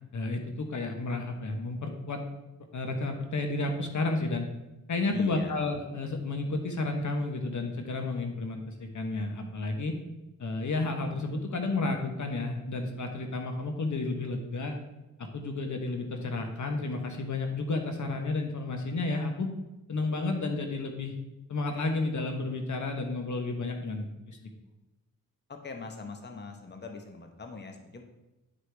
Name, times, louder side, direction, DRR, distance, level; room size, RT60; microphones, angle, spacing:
voice 1, 0.1-2.2 2.7-4.5 4.9-9.9 10.4-14.8 15.3-19.5 19.9-21.2 21.5-24.5, left 3 dB, 55° left, 4 dB, 1.0 m, -31 dB
voice 2, 5.1-5.5 25.5-28.0, left 4 dB, 30° left, 4 dB, 1.0 m, -42 dB
9.7 x 4.8 x 3.4 m, 0.99 s
cardioid pair, 70°, 35 cm